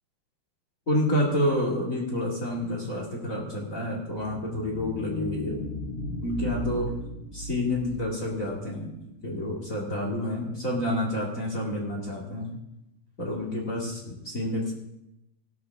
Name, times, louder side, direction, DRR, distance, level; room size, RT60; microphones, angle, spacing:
voice 1, 0.9-5.6 6.2-6.9 7.3-8.9 9.2-12.5 13.2-14.7, left 1 dB, 25° left, -2 dB, 1.9 m, -29 dB
sound 1, 4.0-8.5, left 1 dB, 75° left, 5.4 m, -36 dB
15.5 x 13.0 x 3.6 m, 0.88 s
omnidirectional pair, 4.6 m